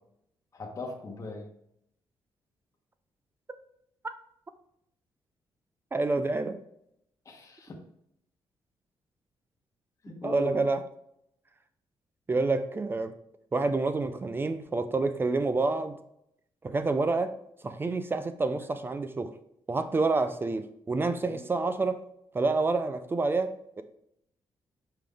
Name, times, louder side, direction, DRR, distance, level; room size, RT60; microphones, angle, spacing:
voice 1, 0.5-1.5 7.2-7.8 10.0-10.6 21.2-21.4, left 3 dB, 35° left, 0 dB, 1.1 m, -40 dB
voice 2, 5.9-6.6 10.2-10.8 12.3-13.1 13.5-15.9 16.6-17.3 17.6-19.3 19.7-22.0 22.3-23.8, right 3 dB, 25° right, 10 dB, 0.5 m, -28 dB
5.7 x 5.1 x 3.5 m, 0.75 s
cardioid pair, 115°, 9 cm